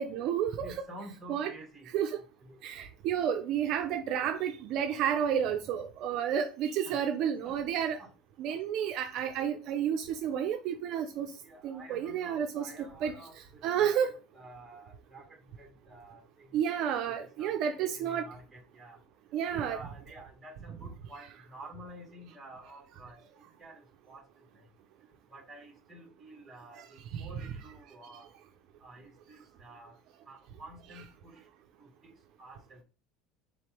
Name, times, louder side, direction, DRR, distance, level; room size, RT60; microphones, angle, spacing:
voice 1, 0.0-0.7 1.3-1.5 1.9-2.2 2.6-8.0 8.4-11.3 11.6-12.7 13.0-13.1 13.6-14.1 16.5-18.3 19.3-19.8 26.8-26.9 27.1-27.3, right 9 dB, 45° right, 0.4 m, -31 dB
voice 2, 0.6-1.9 2.4-2.6 6.8-7.0 7.4-7.6 8.0-8.1 8.5-8.6 11.4-16.5 17.2-19.0 19.5-24.2 25.3-28.3 28.8-29.9 30.3-31.4 31.8-32.1 32.4-32.8, right 1 dB, 5° right, 1.2 m, -50 dB
4.0 x 3.2 x 2.9 m
cardioid pair, 170°, 0 cm